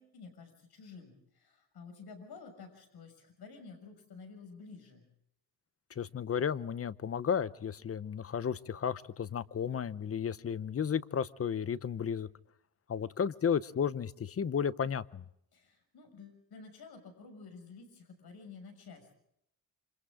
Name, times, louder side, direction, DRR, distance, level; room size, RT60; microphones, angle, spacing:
voice 1, 0.0-5.0 15.5-19.1, left 4 dB, 70° left, 6 dB, 6.5 m, -51 dB
voice 2, 6.0-12.3 12.9-15.2, left 7 dB, 35° left, 16 dB, 0.8 m, -33 dB
28.0 x 26.5 x 3.7 m, 0.76 s
cardioid pair, 120°, 39 cm